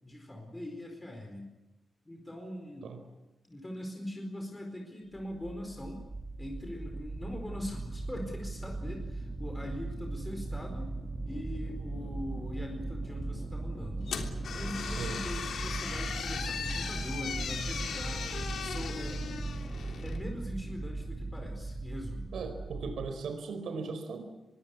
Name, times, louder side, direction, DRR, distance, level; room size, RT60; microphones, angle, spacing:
voice 1, 0.0-1.5 2.0-2.9 3.4-6.0 6.4-10.9 11.2-14.1 14.5-19.3 20.0-22.3, left 1 dB, 15° left, 2 dB, 4.6 m, -42 dB
sound 1, 5.1-23.1, right 2 dB, 25° right, 2.7 m, -38 dB
sound 2, 14.1-20.2, left 6 dB, 80° left, 3.3 m, -38 dB
voice 2, 14.8-15.2 22.3-24.2, right 4 dB, 85° right, 6 dB, 4.4 m, -38 dB
25.5 x 22.0 x 8.4 m, 1.0 s
wide cardioid pair, 130°, 0 cm